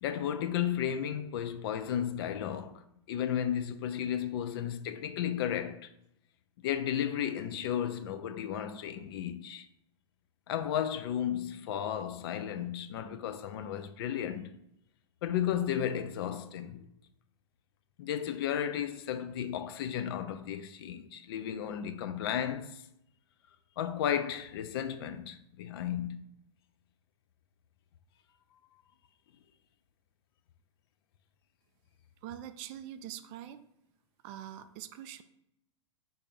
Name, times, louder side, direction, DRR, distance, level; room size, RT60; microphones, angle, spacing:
voice 1, 0.0-2.8 3.1-5.9 6.6-9.7 10.5-14.5 15.2-16.9 18.0-22.8 23.8-26.2, left 9 dB, 50° left, 0.5 m, -34 dB
voice 2, 32.2-33.6 34.2-35.2, right 11 dB, 35° right, 0.4 m, -44 dB
5.4 x 2.6 x 3.7 m
figure-of-eight pair, 100°, 16 cm